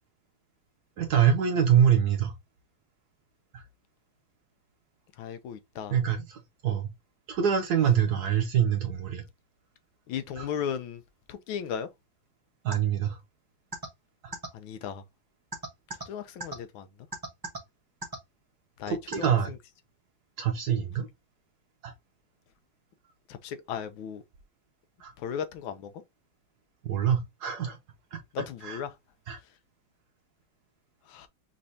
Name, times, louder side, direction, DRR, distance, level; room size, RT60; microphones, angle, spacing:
voice 1, 1.0-2.3 3.5-3.6 5.9-6.9 7.3-9.2 10.4-10.5 12.6-13.2 14.2-14.3 18.9-19.5 20.4-21.1 21.8-21.9 25.0-25.1 26.9-27.8 28.1-28.2 28.6-28.8 29.3-29.4, right 8 dB, 70° right, 1.0 m, -25 dB
voice 2, 5.2-5.9 10.1-11.0 11.3-11.9 14.5-15.0 16.1-16.9 18.8-19.3 23.3-24.2 25.2-25.9 28.3-28.9 31.1-31.3, left 8 dB, 85° left, 1.4 m, -35 dB
sound 1, 12.7-12.8 13.7-13.9 14.3-14.5 15.5-16.0 16.4-16.5 17.1-17.6 18.0-18.2 19.1-19.3, right 2 dB, 15° right, 0.8 m, -34 dB
5.2 x 3.2 x 2.7 m
omnidirectional pair, 2.2 m